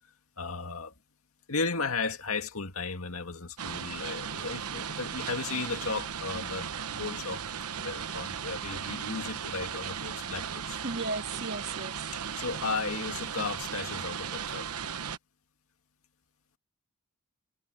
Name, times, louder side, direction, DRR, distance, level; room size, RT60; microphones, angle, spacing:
voice 1, 0.4-0.9 1.5-7.4 7.7-10.8 12.1-14.7, left 4 dB, 70° left, 2.2 m, -35 dB
sound 1, 3.6-15.2, right 7 dB, 85° right, 1.1 m, -36 dB
voice 2, 10.8-12.1, right 3 dB, 50° right, 2.6 m, -35 dB
head